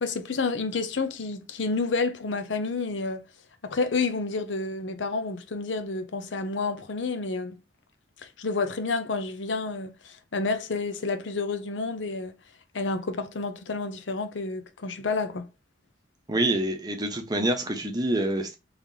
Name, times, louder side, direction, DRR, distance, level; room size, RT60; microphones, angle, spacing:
voice 1, 0.0-3.2 3.6-7.6 8.2-12.4 12.7-15.5, left 3 dB, 80° left, 0.7 m, -29 dB
voice 2, 16.3-18.5, right 1 dB, 20° right, 0.8 m, -26 dB
3.2 x 3.0 x 3.7 m
head